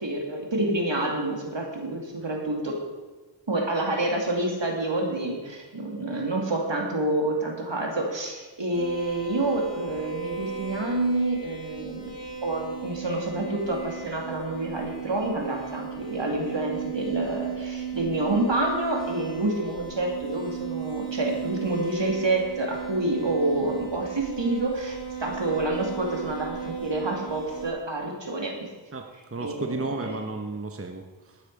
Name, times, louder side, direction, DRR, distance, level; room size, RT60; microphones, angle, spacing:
voice 1, 0.0-2.8 3.5-12.1 12.4-28.5 29.4-30.2, right 2 dB, 70° right, 0 dB, 2.6 m, -28 dB
sound 1, 8.7-27.7, right 7 dB, 60° left, 3.6 m, -36 dB
voice 2, 28.9-31.4, right 3 dB, 30° right, 4 dB, 1.0 m, -34 dB
12.0 x 9.3 x 4.8 m, 1.3 s
wide cardioid pair, 40°, 46 cm